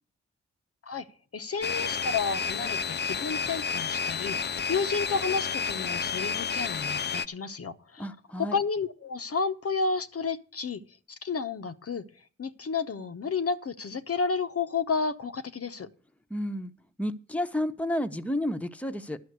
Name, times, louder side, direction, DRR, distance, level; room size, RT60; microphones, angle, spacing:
voice 1, 1.3-8.1 8.4-10.8 11.1-15.9, left 4 dB, 55° left, 0.9 m, -31 dB
sound 1, 1.6-7.3, left 6 dB, 35° left, 0.5 m, -31 dB
voice 2, 8.0-8.6 16.3-16.7 17.0-19.2, left 1 dB, 5° left, 1.0 m, -31 dB
11.5 x 5.8 x 8.1 m
cardioid pair, 50°, 29 cm